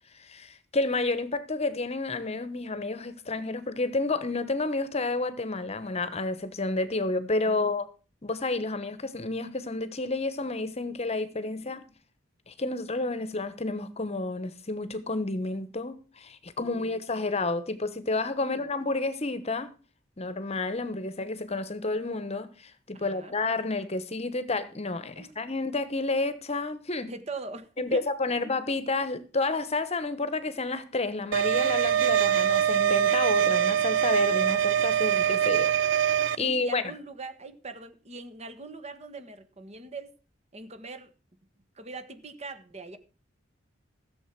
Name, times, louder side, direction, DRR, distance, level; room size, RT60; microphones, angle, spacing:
voice 1, 0.1-7.9 8.2-11.8 12.5-19.7 20.2-27.1 27.8-35.7 36.4-36.8, left 3 dB, 35° left, 1.1 m, -30 dB
voice 2, 16.6-16.9 18.4-18.7 22.9-23.3 25.2-25.3 27.0-28.0 36.3-40.1 40.5-41.1 41.8-43.0, right 3 dB, 35° right, 1.4 m, -41 dB
sound 1, 31.3-36.4, right 9 dB, 70° right, 0.5 m, -23 dB
15.0 x 7.4 x 6.0 m
head